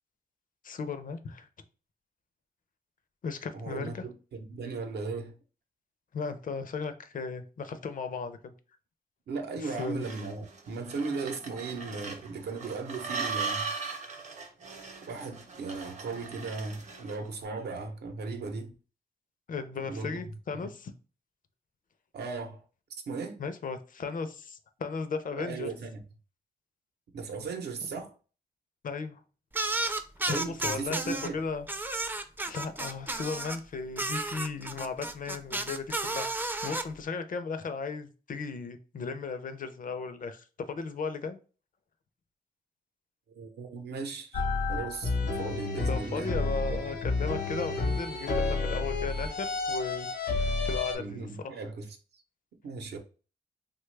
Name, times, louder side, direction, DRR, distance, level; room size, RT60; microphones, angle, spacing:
voice 1, 0.6-1.5 3.2-4.0 6.1-8.5 9.6-10.0 19.5-20.9 23.4-25.7 28.8-29.2 30.3-31.7 32.5-41.4 45.9-51.5, left 5 dB, 55° left, 0.5 m, -36 dB
voice 2, 3.5-5.4 9.3-13.7 15.0-18.7 19.8-20.2 20.5-20.7 22.1-22.6 23.1-23.4 25.4-26.0 27.1-28.1 30.3-31.3 43.3-44.4 44.7-46.9 51.0-52.0 52.6-53.0, right 4 dB, 80° right, 0.7 m, -37 dB
sound 1, 9.8-17.3, right 5 dB, 45° right, 0.7 m, -38 dB
sound 2, 29.5-31.3 31.7-33.6 34.0-36.8, right 2 dB, 10° right, 0.4 m, -32 dB
sound 3, 44.3-50.9, left 3 dB, 80° left, 0.9 m, -30 dB
3.1 x 2.3 x 3.2 m
cardioid pair, 85°, 17 cm